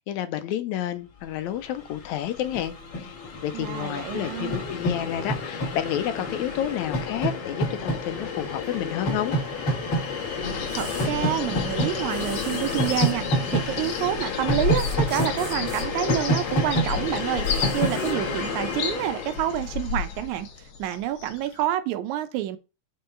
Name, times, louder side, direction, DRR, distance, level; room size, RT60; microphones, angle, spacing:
voice 1, 0.0-3.2 3.4-9.3, left 11 dB, 85° left, 1.9 m, -30 dB
Train, 1.5-1.6 1.8-20.2, left 1 dB, 45° left, 1.7 m, -29 dB
voice 2, 3.5-4.6 10.7-22.6, right 12 dB, 80° right, 2.1 m, -28 dB
sound 1, 10.4-21.6, left 6 dB, 65° left, 1.7 m, -33 dB
sound 2, 10.7-11.1 12.1-13.2 14.8-15.8 17.4-18.2, right 5 dB, 50° right, 1.2 m, -42 dB
5.3 x 3.8 x 5.5 m
omnidirectional pair, 3.3 m